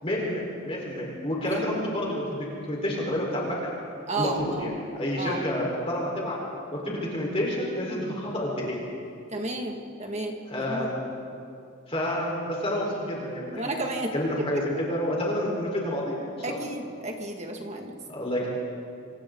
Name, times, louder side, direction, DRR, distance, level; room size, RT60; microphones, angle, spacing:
voice 1, 0.0-3.8 4.1-6.4 6.7-8.7 10.5-11.0 11.9-16.6 18.1-18.5, left 1 dB, 25° left, -3 dB, 4.5 m, -29 dB
voice 2, 4.1-4.7 5.2-5.4 9.3-10.9 13.5-14.1 16.4-17.9, right 2 dB, 30° right, 2 dB, 2.1 m, -32 dB
28.0 x 26.5 x 4.0 m, 2.5 s
head